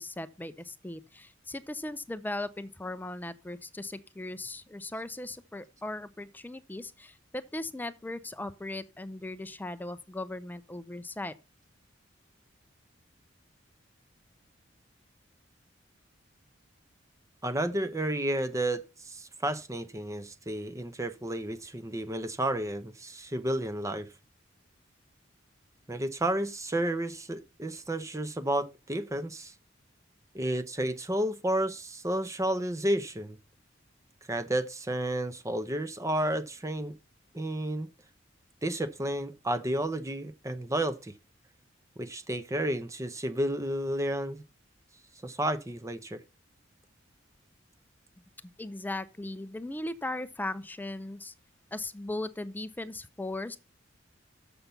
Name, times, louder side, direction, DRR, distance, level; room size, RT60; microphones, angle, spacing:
voice 1, 0.0-11.3 48.6-51.3 51.7-53.6, left 2 dB, 10° left, 0.4 m, -38 dB
voice 2, 17.4-24.1 25.9-29.5 30.3-33.4 34.3-37.0 37.3-37.9 38.6-41.1 42.0-44.4 45.2-46.2, right 1 dB, 15° right, 0.7 m, -31 dB
7.0 x 5.9 x 6.6 m
head